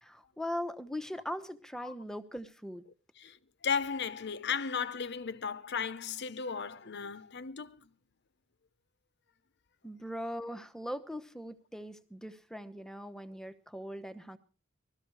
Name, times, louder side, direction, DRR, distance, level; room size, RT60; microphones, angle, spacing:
voice 1, 0.0-2.8 9.8-14.4, equal, 5° left, 0.9 m, -40 dB
voice 2, 3.2-7.8, left 6 dB, 55° left, 0.8 m, -35 dB
20.5 x 14.0 x 4.8 m
head